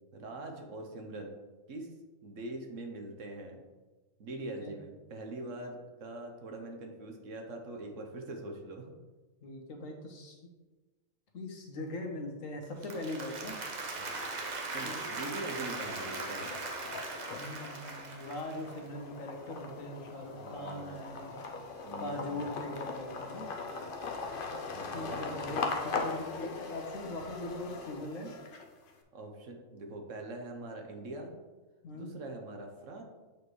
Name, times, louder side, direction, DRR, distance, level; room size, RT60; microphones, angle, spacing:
voice 1, 0.1-1.4 1.7-1.9 2.2-3.6 4.2-8.9 14.0-14.3 14.7-16.5 20.3-21.0 21.8-22.5 24.7-25.6 29.1-31.3 31.9-33.0, right 2 dB, 70° right, 3 dB, 1.3 m, -43 dB
voice 2, 4.3-4.8 9.4-10.4 11.3-13.5 14.8-15.0 17.3-21.3 22.0-23.5 24.9-28.4 31.8-32.1, left 1 dB, 75° left, 2 dB, 1.4 m, -41 dB
Applause, 12.6-18.9, right 3 dB, 40° right, 0.7 m, -39 dB
sound 1, 14.4-15.0 15.4-28.9, left 4 dB, 50° left, 0.7 m, -40 dB
8.0 x 4.4 x 3.1 m, 1.2 s
omnidirectional pair, 1.4 m